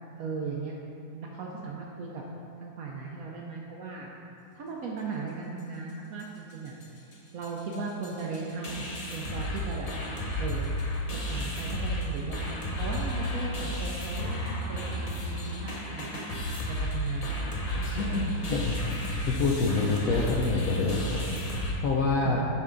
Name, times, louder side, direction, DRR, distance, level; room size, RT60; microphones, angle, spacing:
voice 1, 0.2-0.7 1.1-2.2 2.6-4.1 4.5-6.8 7.3-9.9 10.4-10.7 11.1-16.4 16.7-17.3 22.2-22.5, right 4 dB, 65° right, -2 dB, 0.9 m, -37 dB
sound 1, 6.2-6.3 6.5-6.8 7.1-7.2 7.4-21.7, equal, 50° left, 0.4 m, -33 dB
voice 2, 17.9-22.4, left 3 dB, 70° left, -2 dB, 0.8 m, -27 dB
10.0 x 3.6 x 3.8 m, 2.6 s
omnidirectional pair, 2.0 m